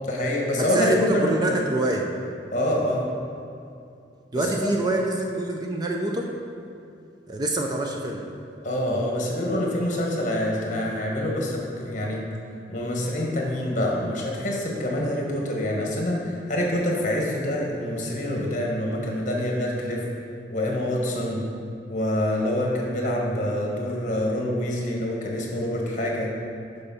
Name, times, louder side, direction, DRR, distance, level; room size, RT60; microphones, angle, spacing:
voice 1, 0.0-1.5 2.5-3.1 4.3-4.8 8.6-12.3 12.7-20.0 20.5-21.4 21.9-26.3, left 1 dB, 45° left, -1 dB, 1.3 m, -26 dB
voice 2, 0.6-2.1 4.3-6.3 7.3-8.2, right 2 dB, 25° right, 1 dB, 0.5 m, -25 dB
6.8 x 5.5 x 5.5 m, 2.6 s
head